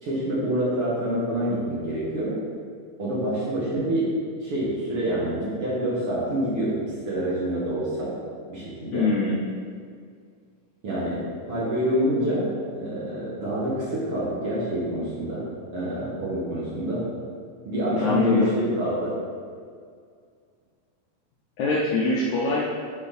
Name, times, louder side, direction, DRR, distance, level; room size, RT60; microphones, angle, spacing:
voice 1, 0.0-2.3 3.0-4.1 4.4-6.7 7.1-8.1 8.5-9.1 10.8-11.2 11.5-12.5 12.7-15.4 15.7-17.0 17.7-19.1, right 1 dB, 50° right, -8 dB, 1.9 m, -26 dB
voice 2, 8.9-9.4 17.9-18.5 21.6-22.6, left 3 dB, 75° left, -4 dB, 1.8 m, -23 dB
10.5 x 5.0 x 4.2 m, 2.1 s
omnidirectional pair, 4.2 m